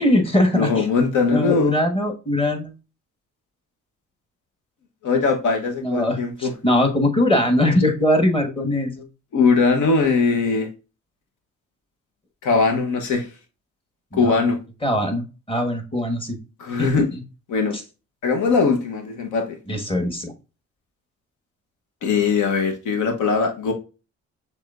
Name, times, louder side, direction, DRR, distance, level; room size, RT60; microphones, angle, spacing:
voice 1, 0.0-0.9 1.3-2.7 5.8-9.1 14.1-14.3 14.8-16.4 16.8-17.0 19.7-20.3, left 1 dB, 20° left, 1.3 m, -21 dB
voice 2, 0.5-1.8 5.0-6.5 9.3-10.7 12.4-13.3 14.1-14.6 16.6-17.1 17.5-17.8 18.2-19.6 22.0-23.7, left 4 dB, 75° left, 1.1 m, -20 dB
6.3 x 3.4 x 2.5 m
cardioid pair, 90°, 30 cm